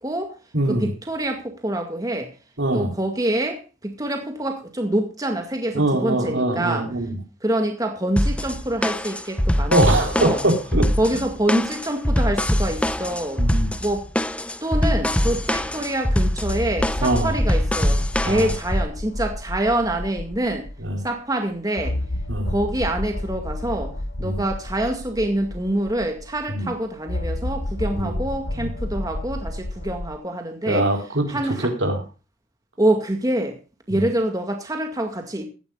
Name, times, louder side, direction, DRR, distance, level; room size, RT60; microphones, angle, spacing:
voice 1, 0.0-0.3 0.7-2.3 2.7-6.9 7.4-10.4 11.0-13.4 13.8-14.1 14.6-20.7 21.0-21.9 22.5-23.9 24.2-30.8 31.3-31.7 32.8-33.6 33.9-35.4, right 1 dB, 20° right, 4 dB, 2.1 m, -25 dB
voice 2, 0.5-0.9 2.6-2.9 5.7-7.2 9.7-10.9 13.4-13.7 17.0-17.3 18.2-18.5 20.8-21.0 22.3-22.5 24.2-24.4 26.5-26.7 28.0-28.2 28.6-28.7 30.7-32.0 33.9-34.0, right 1 dB, 75° right, 3 dB, 4.0 m, -22 dB
Funk Shuffle B, 8.2-18.8, left 1 dB, 5° left, 0.7 m, -23 dB
sound 1, 15.5-15.6 16.4-20.9 21.8-26.4 27.1-30.1, left 1 dB, 70° left, 1.7 m, -30 dB
16.5 x 14.0 x 2.4 m, 0.33 s
head